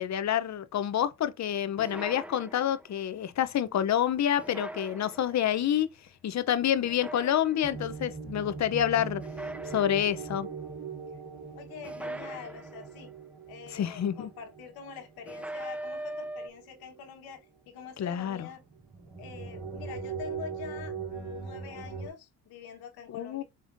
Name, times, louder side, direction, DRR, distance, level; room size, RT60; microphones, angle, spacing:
voice 1, 0.0-5.9 6.2-9.2 9.7-10.5 13.7-14.3 18.0-18.5 23.1-23.4, left 10 dB, 50° left, 0.7 m, -28 dB
sound 1, 1.8-3.0 4.4-5.5 6.8-7.8 9.2-10.4 11.8-13.2 15.3-16.5, right 1 dB, 5° right, 0.4 m, -41 dB
sound 2, 7.6-17.3 17.8-17.9 18.5-22.1, right 5 dB, 75° right, 3.1 m, -41 dB
voice 2, 11.5-13.1 13.5-18.6 19.2-23.4, left 7 dB, 85° left, 1.5 m, -45 dB
5.0 x 3.5 x 2.6 m
supercardioid pair, 70°, 36 cm